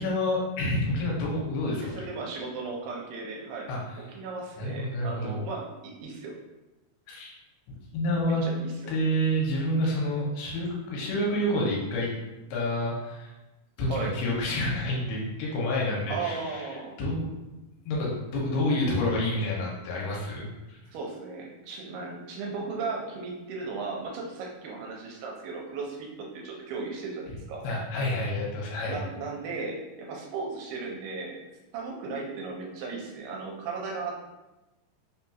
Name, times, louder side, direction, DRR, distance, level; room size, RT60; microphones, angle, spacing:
voice 1, 0.0-2.1 3.7-3.8 4.6-5.3 7.1-7.3 7.9-8.4 8.9-12.1 12.5-13.3 13.8-16.7 17.0-17.3 17.9-20.8 27.6-29.0, left 1 dB, 80° left, -3 dB, 2.7 m, -28 dB
voice 2, 1.8-3.7 4.1-6.4 8.4-8.9 13.9-14.2 16.1-17.0 20.9-27.6 28.9-31.4 31.7-34.2, right 4 dB, 85° right, -1 dB, 2.6 m, -36 dB
5.8 x 2.8 x 2.3 m, 1.0 s
omnidirectional pair, 4.5 m